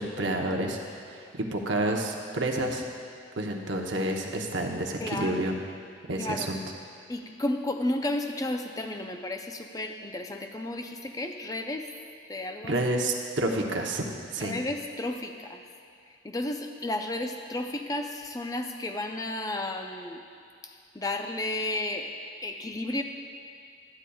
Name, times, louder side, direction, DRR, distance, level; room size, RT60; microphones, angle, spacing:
voice 1, 0.0-2.8 3.4-5.6 6.1-6.6 12.6-14.6, right 1 dB, 65° right, 2 dB, 0.8 m, -29 dB
voice 2, 5.0-5.4 6.2-6.5 7.1-11.9 12.3-12.8 14.4-15.6 16.2-20.2 20.6-22.1 22.4-23.0, left 1 dB, 20° left, 5 dB, 0.4 m, -32 dB
12.5 x 9.8 x 2.3 m, 2.4 s
head